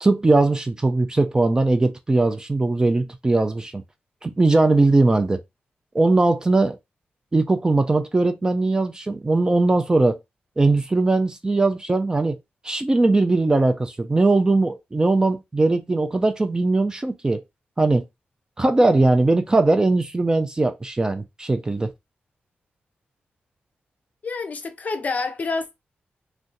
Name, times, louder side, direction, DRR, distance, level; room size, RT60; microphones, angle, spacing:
voice 1, 0.0-3.8 4.2-5.4 5.9-6.8 7.3-10.2 10.6-12.4 12.6-17.4 17.8-18.0 18.6-21.9, right 2 dB, 20° right, 0.4 m, -20 dB
voice 2, 24.2-25.8, left 4 dB, 45° left, 0.6 m, -28 dB
2.6 x 2.2 x 3.7 m
wide cardioid pair, 120°, 4 cm